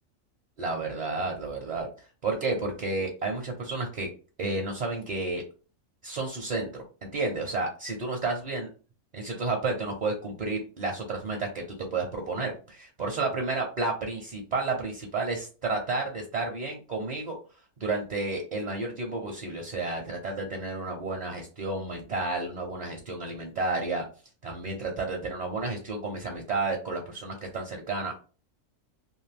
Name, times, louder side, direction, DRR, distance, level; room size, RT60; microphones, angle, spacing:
voice 1, 0.6-1.9 2.2-4.1 4.4-5.4 6.0-8.7 9.1-17.4 17.8-24.0 24.4-28.2, right 3 dB, 45° right, 1 dB, 0.6 m, -31 dB
2.6 x 2.6 x 3.3 m, 0.36 s
omnidirectional pair, 1.4 m